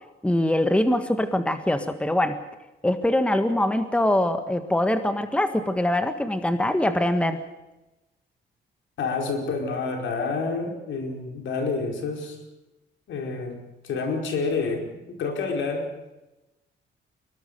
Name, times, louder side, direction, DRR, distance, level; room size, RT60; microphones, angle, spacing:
voice 1, 0.2-2.4 2.8-7.4, left 1 dB, 5° left, 9 dB, 1.6 m, -23 dB
voice 2, 9.0-12.4 13.1-13.6 13.8-15.9, left 4 dB, 75° left, 3 dB, 5.0 m, -28 dB
24.0 x 20.0 x 6.8 m, 1.0 s
cardioid pair, 90°, 20 cm